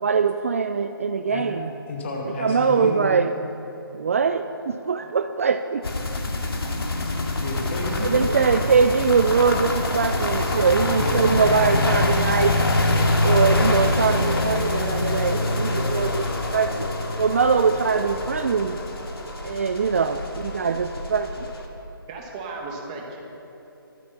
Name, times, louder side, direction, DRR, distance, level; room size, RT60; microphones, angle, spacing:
voice 1, 0.0-1.7 2.4-3.3 3.9-5.8 8.0-12.6 13.2-16.3 16.5-16.8 17.2-18.8 19.4-21.5, right 5 dB, 35° right, 9 dB, 0.4 m, -22 dB
voice 2, 1.9-3.0 7.4-8.7 10.8-12.1, left 2 dB, 30° left, 0 dB, 2.2 m, -30 dB
sound 1, 5.8-21.7, left 2 dB, 80° left, 2.4 m, -25 dB
voice 3, 22.1-23.2, right 3 dB, 20° right, 0 dB, 1.7 m, -35 dB
24.0 x 8.1 x 5.7 m, 2.9 s
hypercardioid pair, 165°, 12 cm